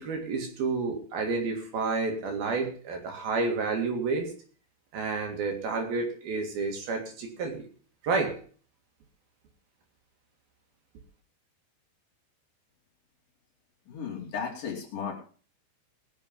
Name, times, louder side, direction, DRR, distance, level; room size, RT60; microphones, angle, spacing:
voice 1, 0.0-4.3 4.9-7.6 8.0-8.4, right 4 dB, 60° right, 3 dB, 3.6 m, -30 dB
voice 2, 13.9-15.1, left 7 dB, 50° left, -2 dB, 4.2 m, -35 dB
21.0 x 7.3 x 5.2 m, 0.42 s
omnidirectional pair, 5.1 m